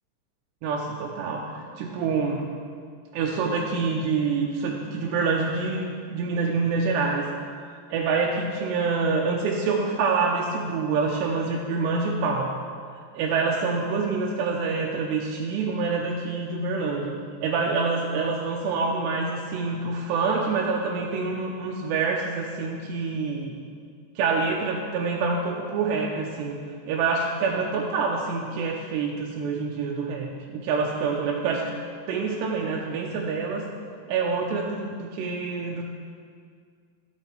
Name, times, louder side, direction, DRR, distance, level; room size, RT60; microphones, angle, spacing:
voice 1, 0.6-2.4 3.1-7.3 7.9-12.5 13.1-17.1 17.4-23.6 24.2-26.6 26.9-31.7 32.1-33.7 34.1-35.8, right 4 dB, 85° right, -1 dB, 2.6 m, -26 dB
16.0 x 8.4 x 3.3 m, 2.1 s
omnidirectional pair, 5.7 m